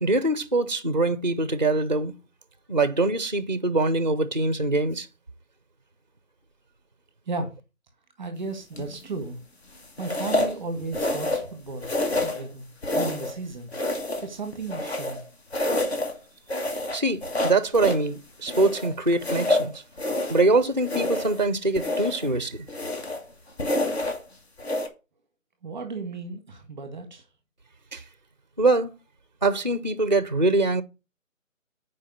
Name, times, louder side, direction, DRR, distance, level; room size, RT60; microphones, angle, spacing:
voice 1, 0.0-2.1 2.7-5.1 16.9-19.7 20.3-22.7 27.9-28.0 28.6-28.9 29.4-30.8, right 2 dB, 35° right, 0.5 m, -23 dB
voice 2, 8.2-9.4 10.0-11.9 12.2-13.7 14.2-15.2 25.6-27.2, right 3 dB, 5° right, 1.2 m, -34 dB
sound 1, 8.7-9.1 10.0-10.6 10.9-11.5 11.8-12.5 12.8-13.4 13.7-15.2 15.5-16.2 16.5-18.1 18.5-20.5 20.8-21.5 21.8-22.3 22.7-23.3 23.6-24.2 24.6-24.9, left 1 dB, 50° left, 1.7 m, -28 dB
7.2 x 4.9 x 7.0 m
figure-of-eight pair, 160°, 41 cm